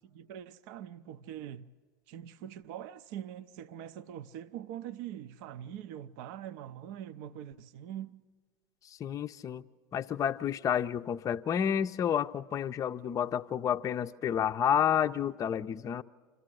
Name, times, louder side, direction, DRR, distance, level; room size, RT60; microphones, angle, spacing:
voice 1, 0.0-1.7 2.1-8.2, right 10 dB, 60° right, 0.6 m, -43 dB
voice 2, 8.8-9.6 9.9-16.0, left 9 dB, 30° left, 0.5 m, -30 dB
26.5 x 14.0 x 7.7 m
hypercardioid pair, 80°, 11 cm